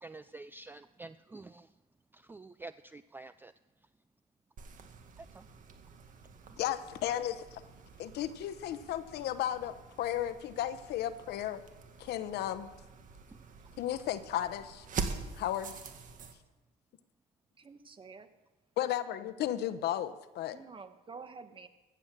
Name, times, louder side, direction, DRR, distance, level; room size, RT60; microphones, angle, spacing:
voice 1, 0.0-1.7 2.1-3.5 5.2-5.4 6.5-6.6, right 3 dB, 10° right, 12 dB, 0.4 m, -48 dB
sound 1, 4.6-16.3, right 5 dB, 50° right, 1.7 m, -45 dB
voice 2, 6.6-7.6 8.0-11.6 12.0-12.7 13.8-14.9 15.3-15.7 18.8-20.6, left 11 dB, 75° left, 13 dB, 0.9 m, -34 dB
voice 3, 17.6-18.3 20.5-21.7, right 5 dB, 30° right, 9 dB, 1.2 m, -49 dB
15.0 x 8.1 x 7.4 m, 1.1 s
cardioid pair, 110°, 17 cm